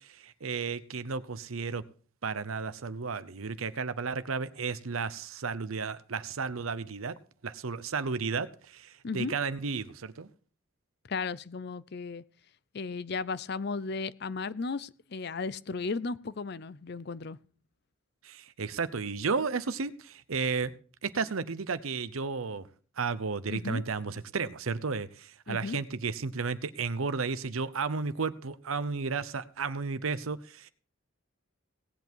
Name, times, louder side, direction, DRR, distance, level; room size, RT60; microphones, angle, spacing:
voice 1, 0.0-1.8 2.2-7.2 7.4-10.3 18.2-20.7 21.0-22.7 23.0-30.7, right 4 dB, 90° right, 0.8 m, -33 dB
voice 2, 11.1-12.2 12.7-17.4 23.5-23.8 25.5-25.8, left 4 dB, 50° left, 0.5 m, -35 dB
18.0 x 8.2 x 4.5 m
head